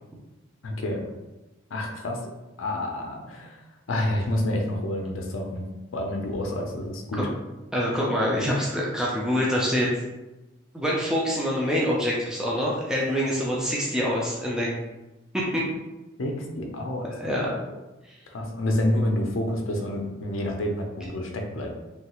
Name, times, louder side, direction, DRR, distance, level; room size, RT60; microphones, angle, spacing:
voice 1, 0.6-1.0 1.7-2.2 2.6-3.6 3.9-5.7 5.9-7.2 16.2-17.1 18.3-21.7, left 1 dB, 80° left, 2 dB, 0.5 m, -28 dB
voice 2, 7.7-9.9 10.7-14.7 15.3-15.6 17.1-17.5 18.0-18.2, equal, 5° right, -5 dB, 0.4 m, -25 dB
3.1 x 2.3 x 2.9 m, 1.0 s
head